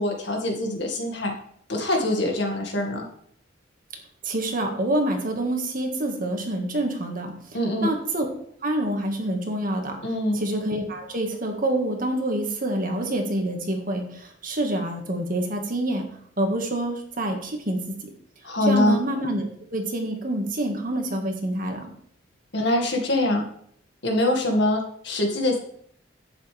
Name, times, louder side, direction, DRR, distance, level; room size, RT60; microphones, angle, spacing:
voice 1, 0.0-1.3 1.7-3.1 7.5-7.9 10.0-10.4 18.4-19.0 22.5-23.5 24.0-25.6, left 1 dB, 65° left, 1 dB, 2.2 m, -24 dB
voice 2, 4.2-7.3 7.8-8.3 8.6-10.0 10.3-16.0 16.4-17.8 18.7-21.9, right 1 dB, 50° right, 3 dB, 1.9 m, -27 dB
11.0 x 8.7 x 3.5 m, 0.65 s
head